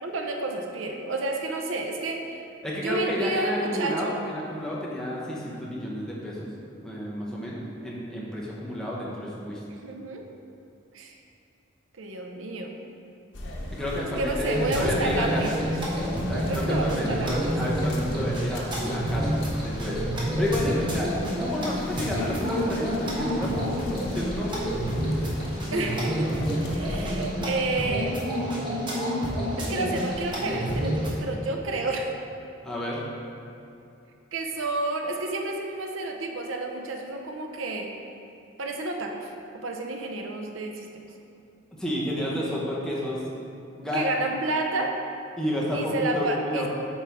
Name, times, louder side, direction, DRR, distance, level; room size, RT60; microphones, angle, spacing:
voice 1, 0.0-2.4 2.8-4.1 9.8-10.2 10.9-11.1 12.0-12.7 14.2-15.7 16.4-17.7 25.7-26.4 26.7-28.2 29.6-32.1 34.3-37.9 38.6-39.3 39.6-40.9 43.9-44.9 45.7-46.7, right 2 dB, 85° right, 2 dB, 0.7 m, -30 dB
voice 2, 2.6-6.5 6.8-9.6 13.7-15.6 16.3-20.0 20.4-21.1 21.4-23.6 24.1-24.6 32.6-33.0 41.7-43.2 43.8-44.1 45.4-46.7, left 1 dB, 5° left, -6 dB, 0.9 m, -30 dB
sound 1, 13.3-27.3, left 1 dB, 80° left, 0.9 m, -38 dB
sound 2, 14.5-31.2, equal, 25° right, 1.1 m, -29 dB
8.2 x 4.4 x 3.5 m, 2.7 s
head